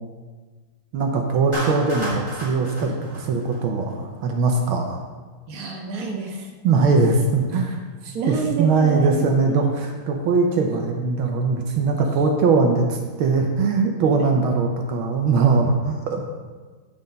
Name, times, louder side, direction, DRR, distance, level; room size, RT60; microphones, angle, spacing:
voice 1, 0.9-5.0 6.6-7.8 8.0-16.2, right 4 dB, 75° right, 2 dB, 1.6 m, -21 dB
Clapping, 1.5-3.9, right 1 dB, 15° right, 2.6 m, -32 dB
voice 2, 5.5-6.5 8.1-9.7 14.2-14.3, right 4 dB, 50° right, 0 dB, 1.4 m, -29 dB
9.5 x 5.5 x 5.2 m, 1.4 s
omnidirectional pair, 2.4 m